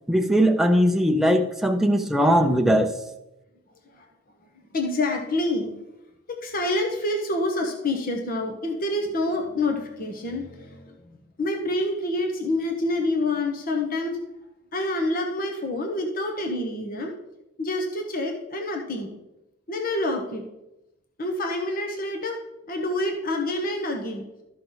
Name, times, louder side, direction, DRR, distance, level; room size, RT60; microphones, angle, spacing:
voice 1, 0.1-2.9, equal, ahead, 0.5 m, -20 dB
voice 2, 4.7-5.7 6.3-14.2 14.7-17.1 17.6-19.1 19.7-20.4 21.2-22.4 22.7-24.2, left 2 dB, 40° left, 1.0 m, -27 dB
13.0 x 5.8 x 3.9 m
head